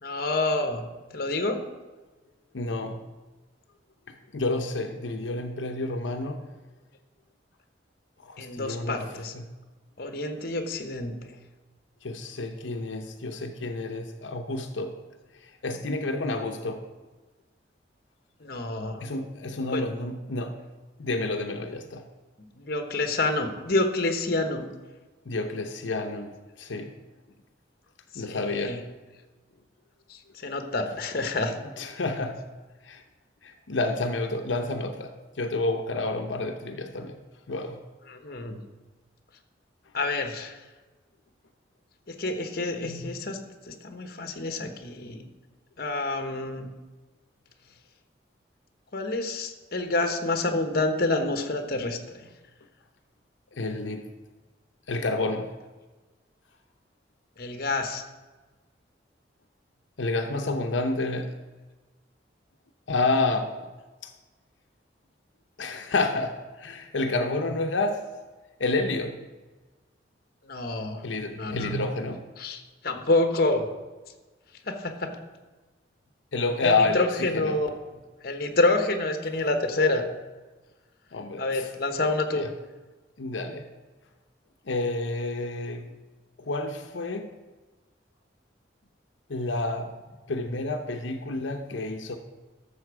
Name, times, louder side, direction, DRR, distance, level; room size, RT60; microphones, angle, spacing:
voice 1, 0.0-0.9 1.1-1.6 8.4-9.4 10.0-11.1 18.4-19.0 19.7-19.9 22.6-24.7 28.3-28.8 30.1-31.5 38.1-38.6 39.9-40.6 42.1-43.4 43.7-45.3 45.8-46.7 48.9-52.3 57.4-58.0 70.5-71.0 71.3-71.7 72.4-73.7 74.7-75.1 76.6-77.7 78.2-80.0 81.4-82.5, left 2 dB, 55° left, 6 dB, 1.1 m, -28 dB
voice 2, 2.5-3.0 4.3-6.5 8.2-9.0 9.3-9.4 12.0-15.0 15.4-16.8 19.0-20.6 21.0-22.1 25.3-26.9 28.1-28.8 31.8-32.4 32.8-33.0 33.4-37.2 37.5-37.8 42.8-43.1 53.5-54.1 54.9-55.5 60.0-61.4 62.9-63.7 65.6-68.1 68.6-69.2 71.0-72.2 76.3-77.6 81.1-81.7 82.3-82.5 83.2-83.7 84.7-85.9 86.4-87.3 89.3-89.9 90.3-92.2, left 2 dB, 85° left, 4 dB, 0.8 m, -29 dB
12.0 x 7.1 x 4.8 m, 1.2 s
head